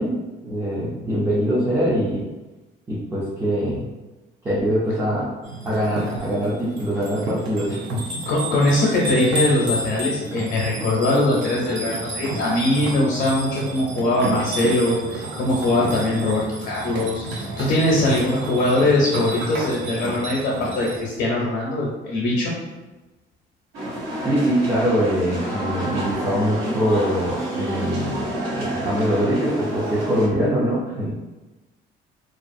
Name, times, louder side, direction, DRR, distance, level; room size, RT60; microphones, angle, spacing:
voice 1, 0.0-2.3 2.9-3.9 4.4-5.3 5.6-8.0 24.2-31.2, equal, 10° right, -9 dB, 0.4 m, -23 dB
sound 1, 5.4-21.0, right 1 dB, 70° right, 0.6 m, -31 dB
voice 2, 8.3-22.5, left 1 dB, 60° left, -4 dB, 0.6 m, -21 dB
sound 2, 23.7-30.3, right 1 dB, 85° right, 1.1 m, -28 dB
2.4 x 2.3 x 2.5 m, 1.1 s
cardioid pair, 175°, 20 cm